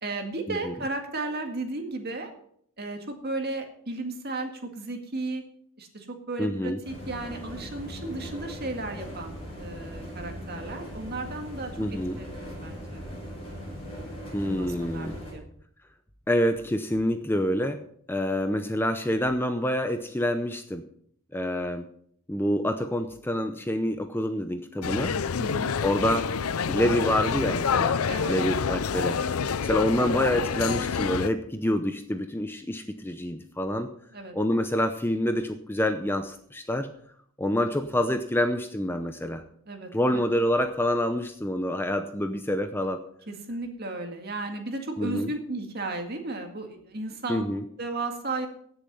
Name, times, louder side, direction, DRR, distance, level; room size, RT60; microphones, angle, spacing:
voice 1, 0.0-2.3 2.8-5.4 5.8-13.0 14.4-15.4 25.4-25.7 28.1-28.4 34.1-34.4 39.7-40.2 43.3-47.4 47.8-48.5, right 2 dB, 45° right, 4 dB, 2.0 m, -34 dB
voice 2, 6.4-6.8 11.8-12.2 14.3-15.2 16.3-17.8 18.1-20.8 21.3-21.9 22.3-25.2 25.8-26.3 26.7-28.0 28.3-33.9 34.3-36.9 37.4-39.4 39.9-43.0 45.0-45.3 47.3-47.6, left 1 dB, 10° left, 7 dB, 0.6 m, -27 dB
sound 1, 6.8-15.3, equal, 25° left, 6.4 m, -39 dB
sound 2, 24.8-31.3, left 6 dB, 75° left, 0.6 m, -27 dB
16.0 x 7.0 x 5.5 m, 0.64 s
head